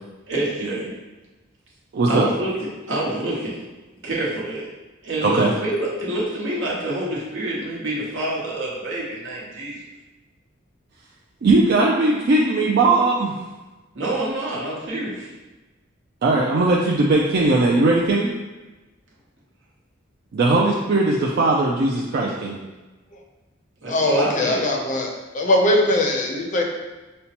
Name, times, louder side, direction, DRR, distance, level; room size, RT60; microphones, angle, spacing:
voice 1, 0.3-0.9 2.1-3.6 4.0-4.7 5.0-9.7 13.9-15.3 23.8-24.6, right 1 dB, 75° right, -5 dB, 1.0 m, -27 dB
voice 2, 1.9-2.3 5.2-5.5 11.4-13.3 16.2-18.3 20.3-22.6, right 2 dB, 55° right, -3 dB, 0.4 m, -19 dB
voice 3, 23.9-26.6, left 1 dB, 40° left, 0 dB, 0.5 m, -20 dB
5.4 x 2.1 x 2.8 m, 1.2 s
head